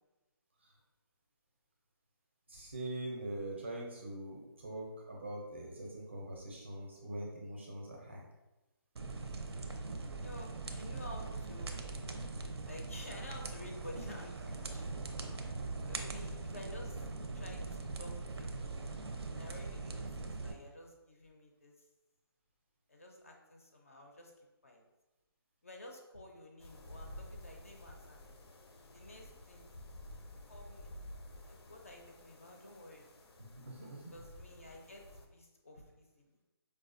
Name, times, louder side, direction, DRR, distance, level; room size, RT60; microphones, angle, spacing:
voice 1, 2.5-8.2 12.1-12.4 13.9-14.0 33.6-34.1, right 1 dB, 30° right, -2 dB, 0.5 m, -43 dB
sound 1, 9.0-20.5, right 3 dB, 90° right, 0.5 m, -41 dB
voice 2, 10.2-11.9 12.7-14.8 15.9-17.1 17.3-18.7 19.3-21.7 22.9-24.8 25.6-28.3 28.9-29.7 30.5-31.0 31.4-33.1 34.1-35.1 35.3-36.4, left 1 dB, 35° left, 1 dB, 0.4 m, -52 dB
sound 2, 26.6-35.3, left 1 dB, 90° left, 0.6 m, -52 dB
4.7 x 2.2 x 2.5 m, 1.0 s
hypercardioid pair, 180°, 13 cm